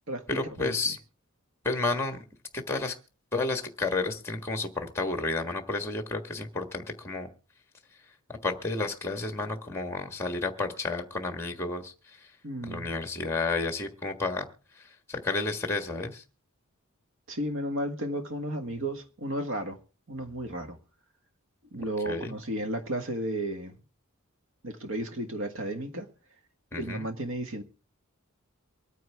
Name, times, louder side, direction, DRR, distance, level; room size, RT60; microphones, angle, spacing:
voice 1, 0.3-1.0 1.6-2.2 2.5-2.9 3.3-7.3 8.3-11.9 12.7-14.5 15.1-16.2 22.0-22.3 26.7-27.1, left 3 dB, 10° left, 1.5 m, -31 dB
voice 2, 12.4-12.9 17.3-19.8 20.1-20.8 21.7-23.8 24.6-26.1 26.7-27.6, right 1 dB, 65° right, 1.6 m, -33 dB
24.5 x 9.2 x 3.5 m
head